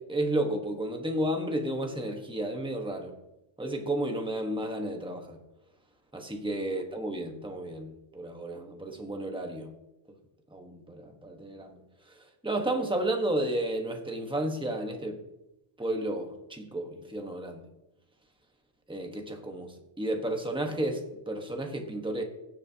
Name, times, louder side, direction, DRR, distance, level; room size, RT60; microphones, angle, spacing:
voice 1, 0.0-3.2 3.6-5.4 6.1-9.7 10.5-11.8 12.4-15.2 15.8-17.7 18.9-22.2, right 1 dB, 5° right, 3 dB, 1.1 m, -32 dB
16.5 x 7.4 x 2.8 m, 0.89 s
omnidirectional pair, 1.1 m